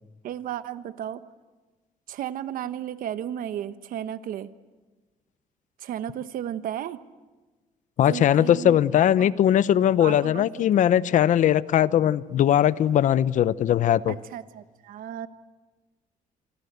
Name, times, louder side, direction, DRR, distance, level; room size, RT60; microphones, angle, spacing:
voice 1, 0.2-1.2 2.1-4.5 5.8-7.0 8.1-8.8 9.2-9.3 10.0-10.6 14.1-15.3, right 10 dB, 75° right, 12 dB, 1.1 m, -34 dB
voice 2, 8.0-14.1, left 10 dB, 60° left, 17 dB, 0.8 m, -20 dB
27.5 x 25.0 x 8.2 m, 1.3 s
cardioid pair, 135°, 14 cm